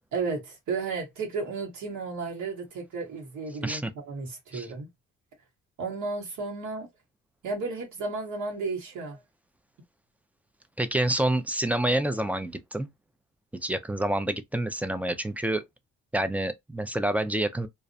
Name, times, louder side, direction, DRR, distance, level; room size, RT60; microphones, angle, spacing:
voice 1, 0.1-4.9 5.8-6.9 7.4-9.2, right 4 dB, 75° right, 1.2 m, -33 dB
voice 2, 10.8-12.9 13.6-15.6 16.1-17.7, right 1 dB, 5° right, 0.3 m, -27 dB
2.5 x 2.0 x 2.6 m
cardioid pair, 90°, 30 cm